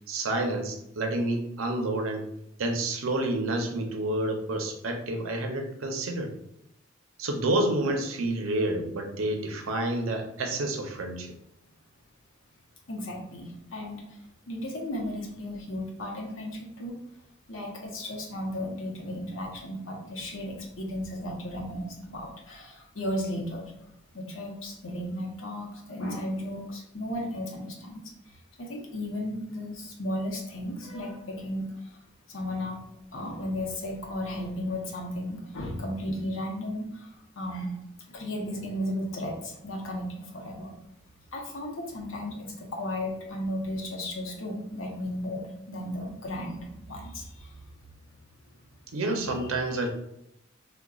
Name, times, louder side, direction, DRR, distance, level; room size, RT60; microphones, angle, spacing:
voice 1, 0.1-2.3 2.6-6.3 7.2-11.3 48.9-49.9, right 2 dB, 90° right, 4 dB, 0.6 m, -29 dB
voice 2, 12.9-14.2 14.5-17.0 17.5-23.7 24.1-28.0 28.6-32.0 32.3-32.8 33.1-37.8 38.1-40.7 41.3-47.6 49.2-49.9, left 1 dB, 75° left, 0 dB, 0.8 m, -35 dB
4.9 x 2.2 x 2.3 m, 0.80 s
head